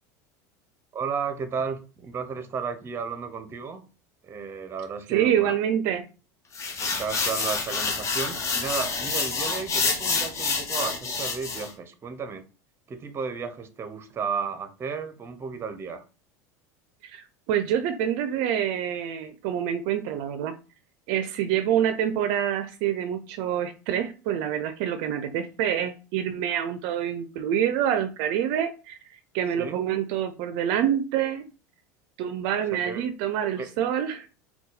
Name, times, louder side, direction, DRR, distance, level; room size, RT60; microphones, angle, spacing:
voice 1, 0.9-3.8 4.2-5.6 6.8-12.4 12.9-16.0 29.6-29.8 32.7-33.0 33.6-33.7, right 6 dB, 25° right, 9 dB, 0.7 m, -33 dB
voice 2, 5.1-6.0 17.0-20.5 21.1-29.0 29.3-31.4 32.2-34.3, right 9 dB, 65° right, 10 dB, 0.5 m, -26 dB
sound 1, 6.5-11.7, left 4 dB, 30° left, 1.0 m, -28 dB
4.0 x 2.3 x 3.9 m, 0.33 s
supercardioid pair, 110°, 9 cm